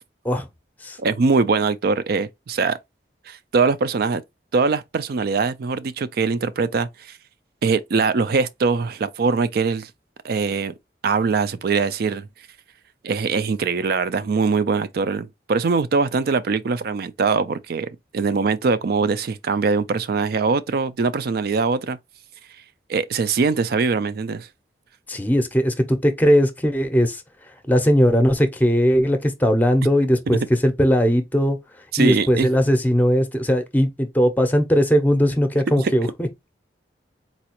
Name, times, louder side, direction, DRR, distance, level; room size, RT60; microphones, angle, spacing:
voice 1, 1.0-2.8 3.3-4.2 4.5-7.1 7.6-9.9 10.2-10.7 11.0-12.3 13.0-17.9 18.1-22.0 22.9-24.5 31.9-32.5 35.8-35.9, right 4 dB, 60° right, 0.4 m, -22 dB
voice 2, 25.1-27.2 27.7-31.6 32.0-36.3, equal, 10° left, 0.6 m, -19 dB
4.1 x 2.3 x 2.9 m
head